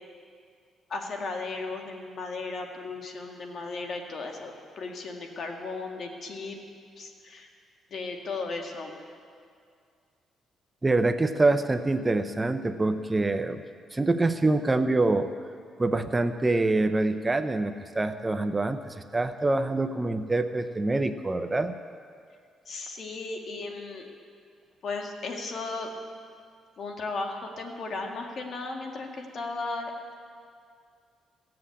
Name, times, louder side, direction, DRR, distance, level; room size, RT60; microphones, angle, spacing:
voice 1, 0.9-6.6 7.0-7.5 7.9-9.0 22.7-24.1 24.8-25.9 26.8-30.1, left 3 dB, 55° left, 2 dB, 2.0 m, -35 dB
voice 2, 10.8-13.6 13.9-15.3 15.8-21.7, right 2 dB, 20° right, 9 dB, 0.6 m, -25 dB
16.5 x 7.8 x 8.6 m, 2.2 s
cardioid pair, 90°, 0 cm